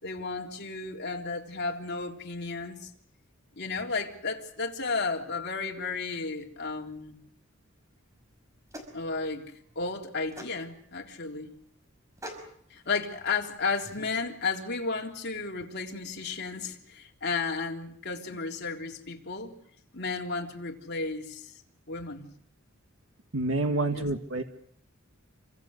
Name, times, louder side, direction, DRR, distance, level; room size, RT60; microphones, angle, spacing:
voice 1, 0.0-2.9 3.6-7.2 8.9-11.5 12.7-19.6 19.9-21.6 21.9-22.3 23.6-24.0, left 4 dB, 55° left, 3.6 m, -33 dB
sound 1, 8.1-14.2, equal, 15° right, 5.7 m, -48 dB
voice 2, 23.3-24.4, right 2 dB, 80° right, 1.8 m, -28 dB
28.5 x 26.0 x 6.6 m
head